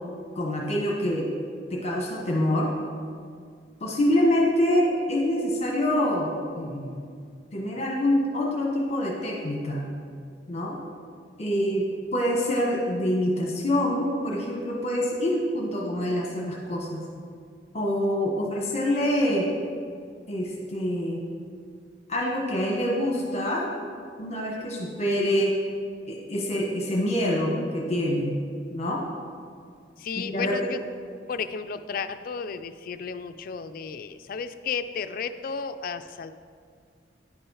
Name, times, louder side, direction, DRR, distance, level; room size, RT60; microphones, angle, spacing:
voice 1, 0.3-1.3 1.7-2.7 3.8-7.0 7.5-9.8 10.5-10.8 11.4-17.0 17.7-19.5 20.3-21.2 22.1-23.7 24.2-25.5 26.1-28.3 28.7-29.0 30.1-30.6, left 1 dB, 40° left, -2 dB, 1.2 m, -26 dB
voice 2, 30.0-30.8 31.3-36.3, left 6 dB, 55° left, 10 dB, 0.4 m, -33 dB
9.7 x 6.0 x 4.8 m, 2.2 s
head